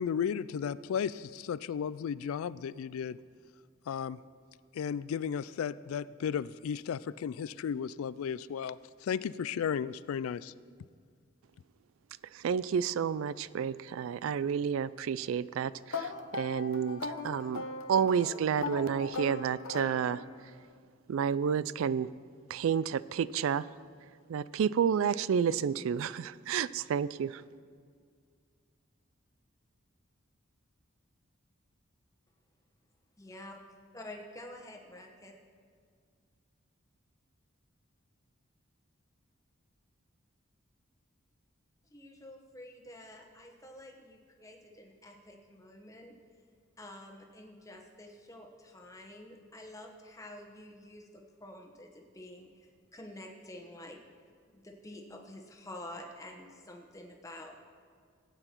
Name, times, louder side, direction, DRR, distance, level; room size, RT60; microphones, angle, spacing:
voice 1, 0.0-3.2 3.9-4.2 4.7-10.5, left 7 dB, 90° left, 17 dB, 0.3 m, -34 dB
voice 2, 12.4-17.6 17.9-20.2 21.1-22.1 22.5-23.6 24.3-27.4, right 7 dB, 75° right, 18 dB, 0.3 m, -30 dB
sound 1, 15.9-20.5, left 3 dB, 75° left, 0.9 m, -39 dB
voice 3, 33.2-33.6 33.9-35.3 41.9-46.1 46.8-54.0 54.5-57.6, left 1 dB, 15° left, 2 dB, 1.1 m, -49 dB
17.0 x 8.9 x 4.5 m, 2.1 s
head